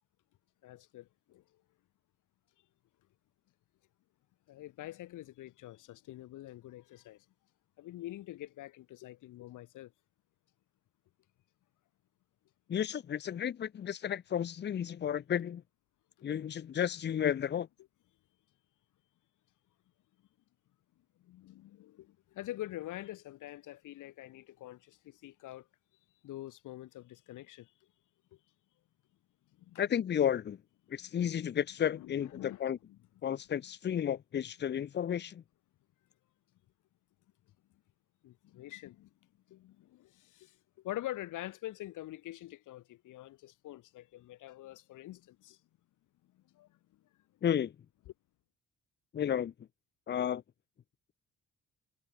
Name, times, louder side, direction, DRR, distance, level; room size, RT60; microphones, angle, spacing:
voice 1, 0.6-1.4 4.5-7.2 7.8-9.9 21.2-25.7 26.2-27.7 28.3-28.4 29.6-29.8 31.0-31.1 31.9-33.0 38.2-39.1 39.5-45.6 46.3-47.0, left 15 dB, 85° left, 6.5 m, -46 dB
voice 2, 12.7-15.6 16.2-17.7 29.8-30.6 30.9-32.8 33.2-35.4 47.4-47.7 49.1-49.5 50.1-50.4, left 9 dB, 35° left, 0.6 m, -32 dB
cardioid pair, 90°, 30 cm